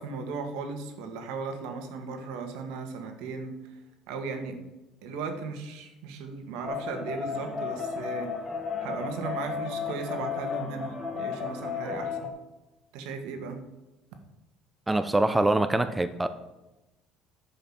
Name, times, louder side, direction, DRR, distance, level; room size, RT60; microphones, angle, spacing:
voice 1, 0.0-3.8 4.1-4.6 5.0-8.3 8.8-12.3 12.9-13.6, right 4 dB, 80° right, 6 dB, 1.8 m, -36 dB
sound 1, 6.6-12.3, left 6 dB, 20° left, 1.6 m, -34 dB
voice 2, 14.9-16.3, right 2 dB, 5° right, 11 dB, 0.5 m, -24 dB
10.5 x 5.4 x 7.3 m, 1.0 s
cardioid pair, 160°, 0 cm